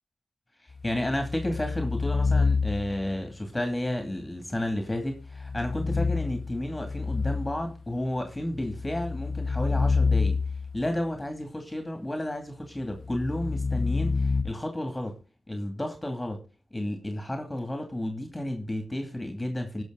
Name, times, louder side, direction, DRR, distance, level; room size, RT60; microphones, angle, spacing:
voice 1, 0.6-10.4 10.7-14.1 14.4-15.2 15.5-16.4 16.7-19.8, left 1 dB, 20° left, 6 dB, 2.5 m, -32 dB
sound 1, 0.7-3.1 5.2-7.7 8.4-10.9 12.9-14.4, left 4 dB, 50° left, 1.1 m, -28 dB
18.0 x 6.1 x 3.9 m, 0.32 s
cardioid pair, 45°, 0 cm